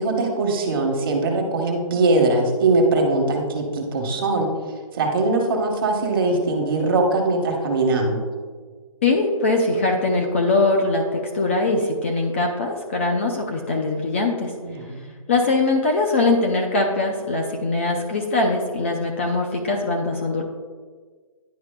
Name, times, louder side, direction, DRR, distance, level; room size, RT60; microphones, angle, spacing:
voice 1, 0.0-4.5 4.9-8.2 14.6-15.1, right 2 dB, 40° right, 2 dB, 1.1 m, -21 dB
voice 2, 9.0-14.5 15.3-20.4, left 3 dB, 20° left, 1 dB, 0.4 m, -22 dB
10.5 x 4.8 x 2.2 m, 1.5 s
hypercardioid pair, 155°, 18 cm